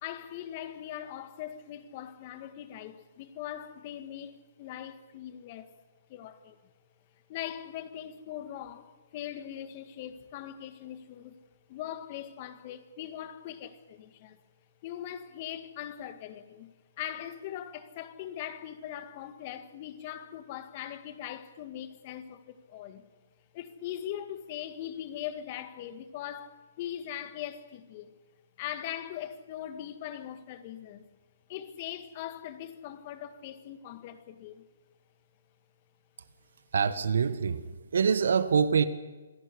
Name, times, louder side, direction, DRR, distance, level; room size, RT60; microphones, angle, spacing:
voice 1, 0.0-5.7 6.1-6.6 7.3-11.4 11.7-14.4 14.8-16.7 17.0-23.1 23.5-28.1 28.6-31.1 31.5-34.7, left 11 dB, 40° left, 1.8 m, -41 dB
voice 2, 36.7-37.6 37.9-38.9, right 6 dB, 65° right, 1.5 m, -25 dB
27.0 x 11.5 x 9.8 m
hypercardioid pair, 140°, 0 cm